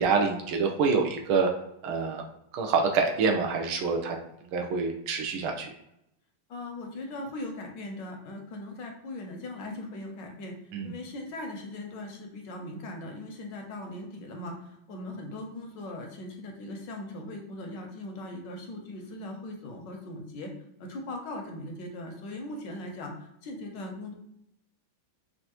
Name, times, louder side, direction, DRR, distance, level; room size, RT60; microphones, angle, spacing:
voice 1, 0.0-1.5 1.8-2.2 2.5-4.2 4.5-5.7 10.7-10.9, right 5 dB, 80° right, 3 dB, 1.6 m, -26 dB
voice 2, 6.5-10.5 10.8-20.5 20.8-23.1 23.4-24.1, left 1 dB, 65° left, 2 dB, 1.3 m, -39 dB
5.4 x 2.7 x 2.9 m, 0.79 s
omnidirectional pair, 2.3 m